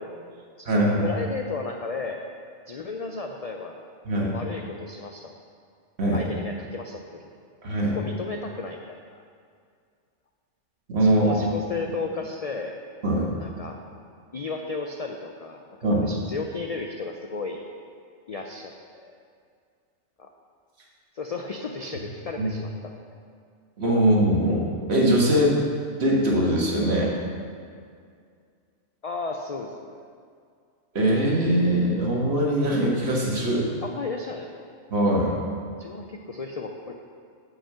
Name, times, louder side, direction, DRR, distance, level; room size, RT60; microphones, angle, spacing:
voice 1, 0.0-0.5 0.8-2.2 2.7-3.9 4.3-5.3 6.1-7.0 7.9-9.2 11.0-12.8 13.4-13.8 14.3-17.6 18.3-18.7 19.0-19.2 20.2-20.3 21.1-23.2 29.0-30.0 33.8-34.7 35.8-36.9, left 4 dB, 80° left, 2 dB, 0.3 m, -34 dB
voice 2, 0.6-1.0 4.1-4.3 6.0-6.2 7.6-8.0 10.9-11.4 13.0-13.3 15.8-16.0 22.4-22.5 23.8-25.6 26.0-27.1 30.9-33.6 34.9-35.3, right 1 dB, 60° right, -3 dB, 1.6 m, -22 dB
5.8 x 5.6 x 6.9 m, 2.2 s
omnidirectional pair, 1.2 m